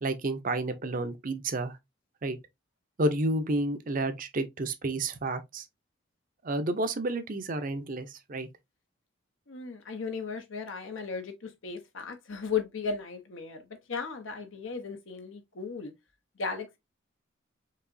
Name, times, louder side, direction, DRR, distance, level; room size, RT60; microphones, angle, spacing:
voice 1, 0.0-1.7 2.2-2.4 3.0-5.6 6.4-8.5, right 2 dB, 45° right, 0.6 m, -30 dB
voice 2, 9.5-15.9 16.4-16.8, left 5 dB, 75° left, 0.9 m, -36 dB
4.7 x 2.9 x 2.6 m
head